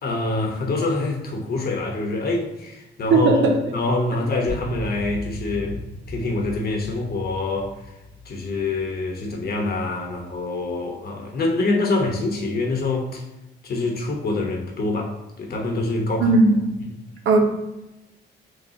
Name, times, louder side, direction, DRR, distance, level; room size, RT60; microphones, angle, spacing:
voice 1, 0.0-3.4 3.7-5.8 6.1-7.8 8.3-13.2 13.6-16.3, left 2 dB, 55° left, 1 dB, 1.0 m, -25 dB
voice 2, 3.1-3.6 16.2-16.6 17.3-17.4, right 3 dB, 80° right, 2 dB, 0.7 m, -16 dB
sound 1, 4.5-9.8, left 1 dB, 90° left, 0.9 m, -37 dB
6.4 x 2.3 x 2.8 m, 0.96 s
cardioid pair, 90°, 19 cm